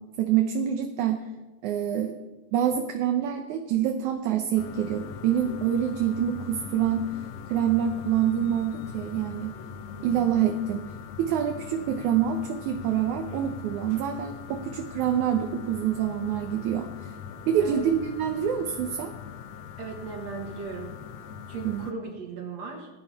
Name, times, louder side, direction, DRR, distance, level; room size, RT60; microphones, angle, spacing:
voice 1, 0.2-1.2 1.6-2.1 2.5-7.1 7.5-9.5 10.0-10.9 11.2-16.9 17.5-19.1 21.6-21.9, right 9 dB, 70° right, 4 dB, 2.0 m, -26 dB
sound 1, 4.6-21.9, left 7 dB, 80° left, 1.6 m, -41 dB
voice 2, 10.0-10.4 17.6-17.8 19.8-20.9 21.5-22.9, right 4 dB, 55° right, 1 dB, 2.5 m, -37 dB
19.5 x 10.0 x 5.7 m, 1.2 s
omnidirectional pair, 4.2 m